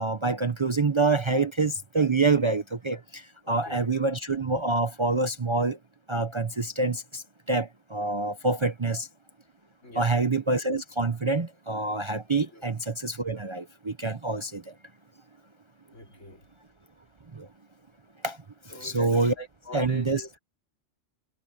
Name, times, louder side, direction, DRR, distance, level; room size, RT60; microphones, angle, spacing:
voice 1, 0.0-5.8 6.1-9.1 9.9-14.7 17.3-17.5 18.2-18.4 18.8-19.3 19.7-20.2, right 3 dB, 30° right, 0.6 m, -26 dB
voice 2, 3.4-3.9 9.8-10.2 12.5-12.6 15.9-16.5 18.7-20.3, equal, 80° left, 4.7 m, -43 dB
omnidirectional pair, 1.3 m